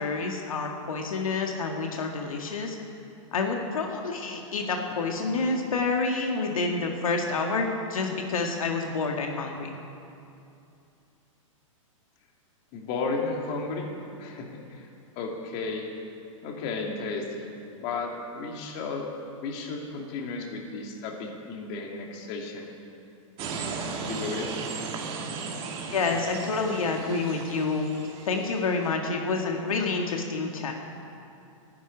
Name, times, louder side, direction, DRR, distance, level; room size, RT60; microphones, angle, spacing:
voice 1, 0.0-2.8 3.3-9.7 25.9-27.9 28.2-30.7, left 4 dB, 85° left, 2 dB, 1.9 m, -28 dB
voice 2, 12.7-13.9 14.2-14.9 15.2-15.9 16.4-17.5 17.8-19.0 19.4-22.7 24.1-24.5, left 4 dB, 40° left, 1 dB, 2.6 m, -33 dB
sound 1, 23.4-28.9, right 5 dB, 30° right, 2.0 m, -36 dB
12.0 x 11.5 x 9.7 m, 2.6 s
hypercardioid pair, 135°, 17 cm